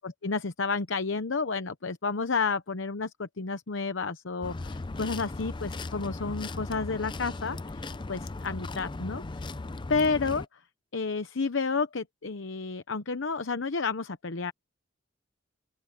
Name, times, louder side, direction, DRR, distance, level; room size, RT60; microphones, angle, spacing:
voice 1, 0.2-9.4 9.9-10.6 10.9-14.5, left 4 dB, 75° left, 0.9 m, -31 dB
sound 1, 4.4-10.5, left 2 dB, 25° left, 0.5 m, -37 dB
open air
head